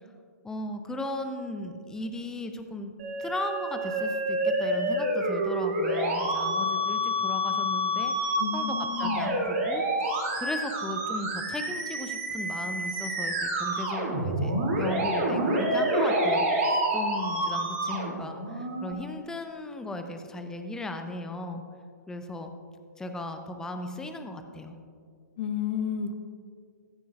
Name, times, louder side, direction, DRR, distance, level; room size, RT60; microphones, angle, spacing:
voice 1, 0.4-2.9 3.2-21.6 22.1-22.5 23.0-24.8, left 2 dB, 5° left, 6 dB, 0.7 m, -36 dB
Musical instrument, 3.0-18.9, right 1 dB, 45° right, 2.8 m, -28 dB
voice 2, 8.4-9.4 25.4-26.2, left 8 dB, 40° left, 8 dB, 0.9 m, -31 dB
15.0 x 13.5 x 2.5 m, 2.2 s
figure-of-eight pair, 120°, 9 cm